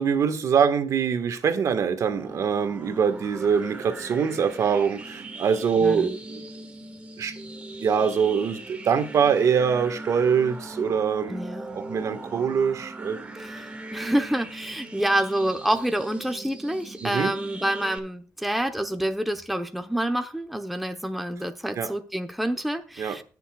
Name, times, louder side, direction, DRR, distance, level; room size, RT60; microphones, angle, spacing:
voice 1, 0.0-6.4 7.2-7.4 7.8-11.4 11.7-13.2 17.0-17.3 21.8-21.9 23.0-23.2, right 6 dB, 60° right, 1.5 m, -24 dB
sound 1, 2.0-18.0, right 2 dB, 20° right, 1.9 m, -40 dB
voice 2, 5.8-6.2 11.3-11.8 13.4-23.2, right 1 dB, ahead, 0.9 m, -28 dB
20.5 x 6.9 x 2.3 m
cardioid pair, 125°, 6 cm